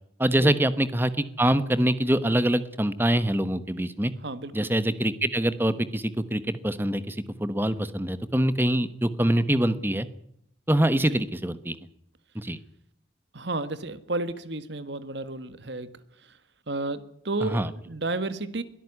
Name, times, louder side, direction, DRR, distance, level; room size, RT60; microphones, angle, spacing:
voice 1, 0.2-4.1 4.5-10.1 10.7-11.8 12.3-12.6 17.4-17.7, right 1 dB, 10° right, 13 dB, 1.1 m, -24 dB
voice 2, 4.2-4.7 11.1-11.2 13.3-15.9 16.7-18.6, right 2 dB, 65° right, 13 dB, 1.6 m, -32 dB
22.5 x 13.0 x 9.9 m, 0.72 s
head